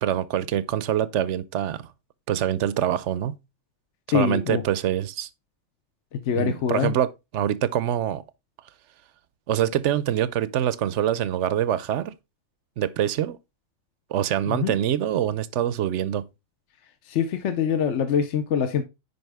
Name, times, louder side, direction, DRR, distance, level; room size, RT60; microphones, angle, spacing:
voice 1, 0.0-1.9 2.3-3.4 4.1-5.3 6.3-8.2 9.5-12.1 12.8-13.4 14.1-16.3, right 11 dB, 65° right, 0.8 m, -25 dB
voice 2, 4.1-4.6 6.1-7.0 14.5-14.7 17.0-18.8, left 7 dB, 60° left, 1.0 m, -24 dB
9.6 x 5.0 x 3.4 m
omnidirectional pair, 1.4 m